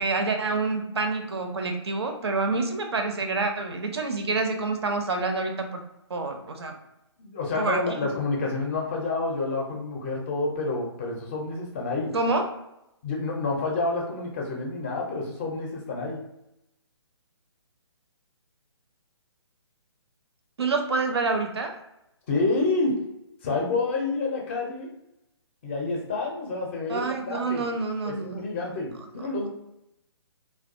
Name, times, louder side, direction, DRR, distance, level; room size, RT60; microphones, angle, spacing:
voice 1, 0.0-5.8 6.1-6.8 7.6-7.8 12.1-12.4 20.6-21.7 26.9-28.4 29.2-29.3, right 3 dB, 65° right, 5 dB, 0.5 m, -27 dB
voice 2, 7.2-12.1 13.0-16.2 22.3-23.0 23.4-24.9 25.6-27.6 28.1-29.5, left 3 dB, 25° left, -1 dB, 0.4 m, -28 dB
2.3 x 2.2 x 2.5 m, 0.87 s
figure-of-eight pair, 135°, 15 cm